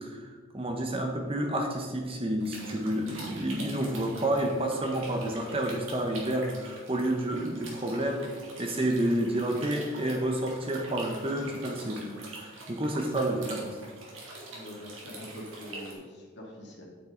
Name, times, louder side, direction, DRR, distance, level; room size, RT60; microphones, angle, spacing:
voice 1, 0.0-8.3 8.6-13.8, right 1 dB, 25° right, 3 dB, 1.0 m, -30 dB
sound 1, 2.4-15.9, right 2 dB, 75° right, 2.4 m, -45 dB
voice 2, 14.5-16.8, left 1 dB, 55° left, -2 dB, 2.3 m, -44 dB
8.9 x 8.8 x 3.9 m, 1.5 s
head